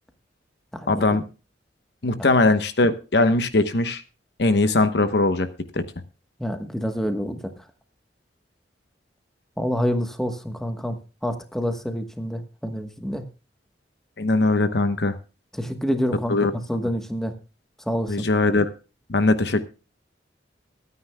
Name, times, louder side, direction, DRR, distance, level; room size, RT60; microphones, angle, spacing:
voice 1, 0.9-1.2 2.0-4.0 4.4-5.5 5.7-5.8 14.2-15.1 16.3-16.5 18.1-18.7 19.1-19.6, left 2 dB, 65° left, 10 dB, 1.0 m, -20 dB
voice 2, 6.4-7.4 9.6-11.0 11.2-13.2 15.6-17.3 17.9-18.2, equal, 5° left, 6 dB, 1.1 m, -27 dB
23.5 x 9.5 x 2.2 m, 0.33 s
head